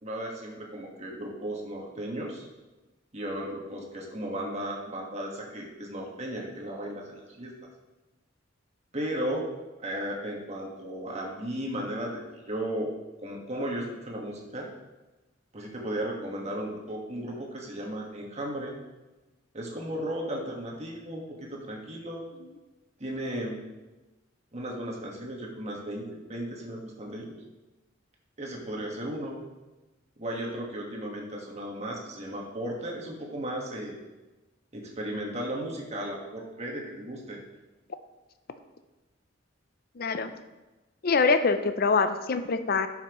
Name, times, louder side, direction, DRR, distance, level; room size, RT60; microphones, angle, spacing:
voice 1, 0.0-2.5 3.1-7.5 8.9-9.4 9.8-12.2 12.5-12.9 13.2-14.7 15.5-18.7 19.5-22.2 23.0-23.6 24.5-27.4 28.4-29.4 30.2-34.0 34.7-37.4, right 1 dB, 35° right, -1 dB, 1.6 m, -35 dB
voice 2, 40.0-40.3 41.0-42.9, left 4 dB, 50° left, 10 dB, 0.5 m, -24 dB
11.5 x 5.8 x 3.1 m, 1.1 s
head